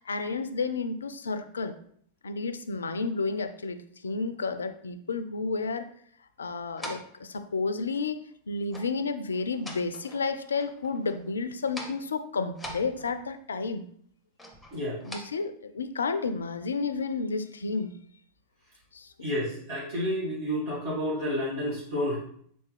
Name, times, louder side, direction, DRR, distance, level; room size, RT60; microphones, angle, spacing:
voice 1, 0.1-1.7 2.2-5.9 6.4-13.9 15.0-17.9 18.9-19.1, left 4 dB, 70° left, 11 dB, 0.3 m, -31 dB
sound 1, 6.8-7.2 8.7-9.0 9.3-10.3 10.6-11.3 11.6-12.1 12.5-13.4 14.4-15.2, equal, 5° left, 0.8 m, -43 dB
voice 2, 19.2-22.2, equal, 55° right, -8 dB, 1.6 m, -30 dB
4.1 x 3.3 x 3.2 m, 0.63 s
figure-of-eight pair, 90°, 0 cm